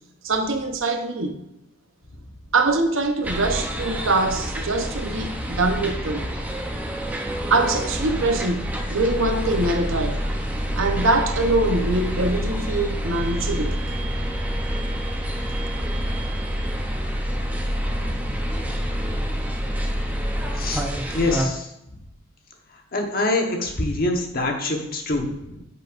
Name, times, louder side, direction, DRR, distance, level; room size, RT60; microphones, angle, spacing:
voice 1, 0.2-1.4 2.5-6.3 7.5-10.2 10.7-13.8, right 2 dB, 80° right, 0.9 m, -23 dB
sound 1, 3.2-21.5, equal, 10° right, 0.7 m, -27 dB
voice 2, 21.1-21.7 22.9-25.6, left 2 dB, 45° left, 1.2 m, -25 dB
9.4 x 6.5 x 2.6 m
head